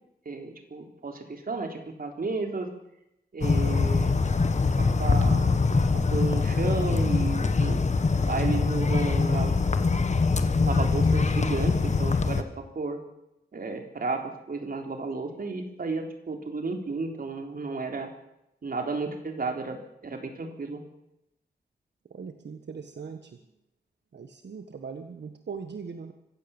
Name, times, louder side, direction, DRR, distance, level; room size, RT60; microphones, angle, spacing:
voice 1, 0.3-2.7 3.3-4.2 4.8-5.6 6.1-7.8 8.3-9.5 10.6-13.0 13.5-18.1 18.6-20.8, right 3 dB, 55° right, 4 dB, 3.7 m, -33 dB
sound 1, 3.4-12.4, left 4 dB, 40° left, 1.5 m, -23 dB
voice 2, 22.1-23.3 24.1-26.1, right 5 dB, 80° right, 6 dB, 1.6 m, -40 dB
25.0 x 16.0 x 7.3 m, 0.86 s
wide cardioid pair, 140°, 17 cm